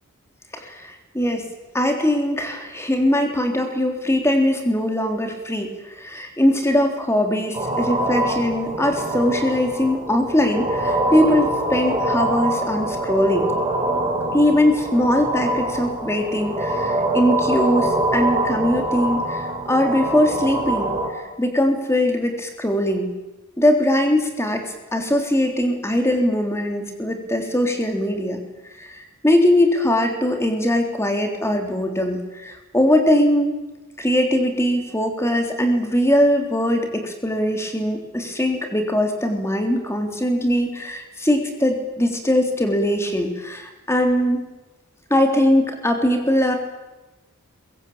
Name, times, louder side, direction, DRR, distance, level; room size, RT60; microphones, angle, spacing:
voice 1, 0.5-1.4 1.7-5.7 5.9-13.5 14.3-20.9 21.4-23.1 23.6-24.7 24.9-28.4 28.8-33.6 34.0-44.4 45.1-46.6, left 1 dB, 10° left, 4 dB, 3.5 m, -21 dB
sound 1, 7.5-21.1, right 1 dB, 20° right, 4.2 m, -24 dB
22.5 x 22.0 x 8.8 m, 1.1 s
head